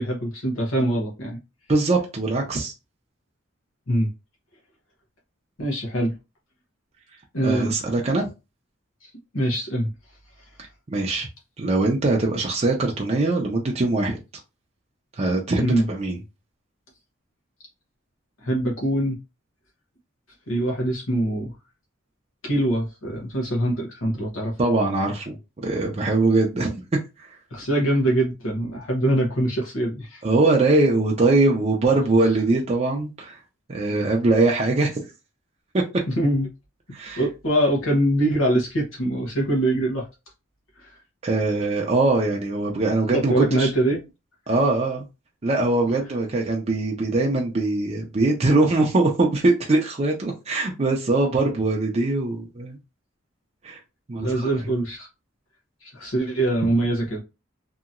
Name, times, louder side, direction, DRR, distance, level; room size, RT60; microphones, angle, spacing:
voice 1, 0.0-1.4 3.9-4.1 5.6-6.1 7.3-7.7 9.0-9.9 15.6-15.9 18.4-19.2 20.5-21.5 22.4-24.5 27.5-30.2 36.2-36.5 37.2-40.0 40.8-40.9 43.1-44.0 54.2-55.1 55.8-57.2, right 1 dB, 90° left, 1.0 m, -23 dB
voice 2, 1.7-2.7 7.4-8.3 10.9-11.3 11.6-14.2 15.2-16.2 24.6-25.4 25.6-26.8 27.2-27.3 30.2-33.4 33.7-35.0 35.7-35.8 36.9-37.2 41.2-43.7 44.5-45.0 45.4-52.8 53.6-53.8 54.1-54.5, right 2 dB, 35° right, 0.5 m, -22 dB
2.9 x 2.7 x 2.4 m
head